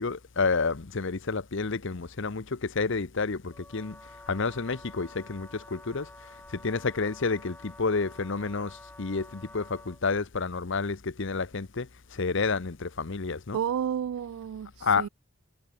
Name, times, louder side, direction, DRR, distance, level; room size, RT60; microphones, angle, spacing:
voice 1, 0.0-4.0 4.3-13.6 14.8-15.1, left 4 dB, 60° left, 0.9 m, -30 dB
Wind instrument woodwind instrument, 3.5-10.0, left 1 dB, 10° left, 2.9 m, -50 dB
voice 2, 13.5-15.1, right 8 dB, 80° right, 0.3 m, -31 dB
head